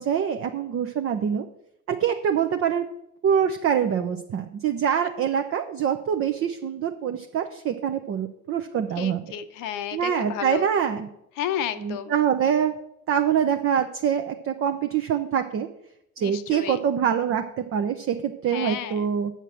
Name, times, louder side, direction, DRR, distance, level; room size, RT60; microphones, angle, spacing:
voice 1, 0.0-1.4 1.9-2.9 3.2-9.2 9.9-11.1 11.8-12.7 13.1-15.7 16.2-19.3, right 8 dB, 30° right, 6 dB, 0.7 m, -25 dB
voice 2, 9.0-10.7 11.4-12.1 16.2-16.8 18.5-19.1, left 10 dB, 50° left, 11 dB, 0.8 m, -32 dB
7.6 x 6.6 x 6.3 m, 0.80 s
figure-of-eight pair, 60°, 43 cm